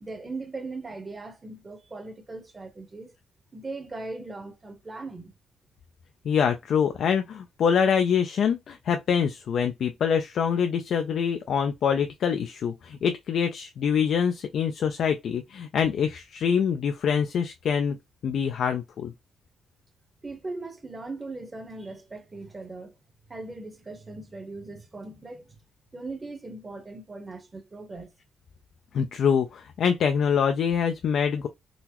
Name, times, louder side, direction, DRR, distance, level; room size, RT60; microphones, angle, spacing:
voice 1, 0.0-3.2 3.5-5.3 20.2-22.9 23.3-25.6 25.9-28.1, right 3 dB, 25° right, 0.9 m, -39 dB
voice 2, 6.2-18.0 18.2-19.1 28.9-31.5, left 7 dB, 65° left, 0.4 m, -25 dB
3.8 x 2.0 x 2.9 m
cardioid pair, 90°, 0 cm